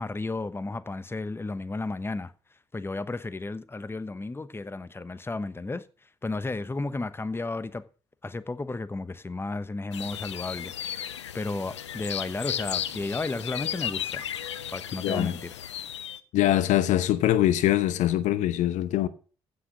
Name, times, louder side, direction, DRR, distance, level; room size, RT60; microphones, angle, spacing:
voice 1, 0.0-2.3 2.7-5.9 6.2-7.8 8.2-14.3 14.7-15.5, left 3 dB, 15° left, 1.0 m, -33 dB
sound 1, 9.9-16.2, left 10 dB, 80° left, 0.5 m, -35 dB
voice 2, 15.0-15.3 16.3-19.1, left 13 dB, 55° left, 0.8 m, -23 dB
15.0 x 6.3 x 6.3 m
figure-of-eight pair, 45°, 15 cm